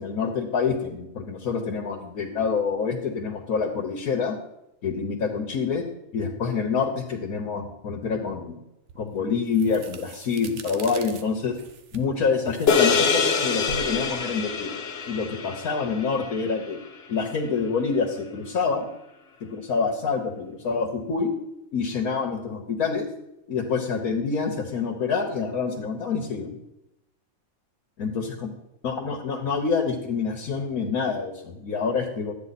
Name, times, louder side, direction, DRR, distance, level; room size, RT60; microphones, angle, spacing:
voice 1, 0.0-4.4 4.8-5.8 6.1-8.6 9.0-11.6 11.9-14.8 15.1-16.8 17.1-18.9 19.4-21.3 21.7-23.1 23.5-26.6 28.0-28.5 28.8-32.3, left 5 dB, 75° left, 0 dB, 1.6 m, -27 dB
sound 1, 8.9-15.7, right 4 dB, 60° right, 1.1 m, -44 dB
sound 2, 12.7-17.2, left 5 dB, 50° left, 1.0 m, -25 dB
12.0 x 9.1 x 4.2 m, 0.87 s
omnidirectional pair, 1.5 m